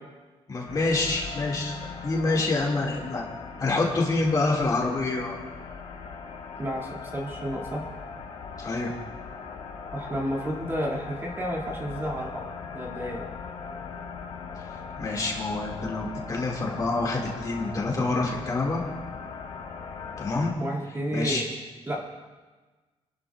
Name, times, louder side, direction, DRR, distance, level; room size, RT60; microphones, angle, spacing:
voice 1, 0.5-1.7 2.0-3.3 3.6-5.4 8.6-8.9 14.6-18.8 20.2-20.5 21.1-21.4, left 3 dB, 35° left, -2 dB, 2.3 m, -27 dB
sound 1, 0.7-20.5, left 5 dB, 85° left, 1.8 m, -39 dB
voice 2, 6.6-7.9 9.9-13.3 20.6-21.5 21.9-22.1, equal, 20° right, -2 dB, 2.5 m, -31 dB
28.0 x 12.0 x 2.5 m, 1.3 s
wide cardioid pair, 150°, 11 cm